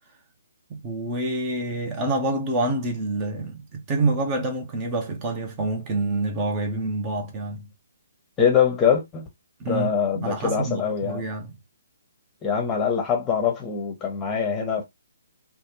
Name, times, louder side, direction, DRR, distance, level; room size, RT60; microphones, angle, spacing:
voice 1, 0.7-7.7 9.6-11.6, right 2 dB, 25° right, 0.8 m, -27 dB
voice 2, 8.4-9.3 9.7-11.2 12.4-14.8, left 7 dB, 15° left, 0.8 m, -23 dB
3.4 x 2.3 x 2.7 m
figure-of-eight pair, 135°, 0 cm